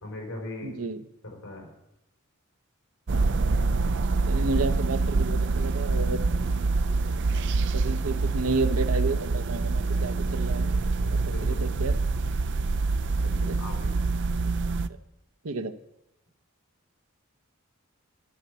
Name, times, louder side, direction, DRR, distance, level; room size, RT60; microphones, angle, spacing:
voice 1, 0.0-0.7 1.2-1.7 11.3-11.9 13.2-14.0, left 2 dB, 75° left, 0 dB, 4.7 m, -39 dB
voice 2, 0.6-1.0 3.1-3.3 4.3-6.2 7.7-10.7 11.1-12.0 13.5-13.6 14.9-15.0 15.4-15.8, right 3 dB, 75° right, 9 dB, 0.8 m, -31 dB
sound 1, 3.1-14.9, right 3 dB, 55° right, 0.5 m, -26 dB
12.0 x 6.8 x 8.1 m, 0.86 s
head